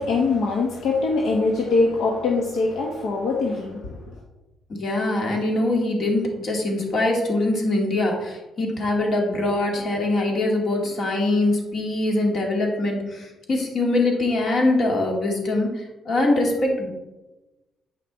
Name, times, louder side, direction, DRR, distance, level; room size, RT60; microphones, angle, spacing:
voice 1, 0.0-4.1, left 3 dB, 80° left, -1 dB, 1.1 m, -23 dB
voice 2, 4.7-16.9, left 2 dB, 55° left, 0 dB, 2.1 m, -23 dB
8.3 x 5.4 x 4.0 m, 1.1 s
cardioid pair, 90°, 0 cm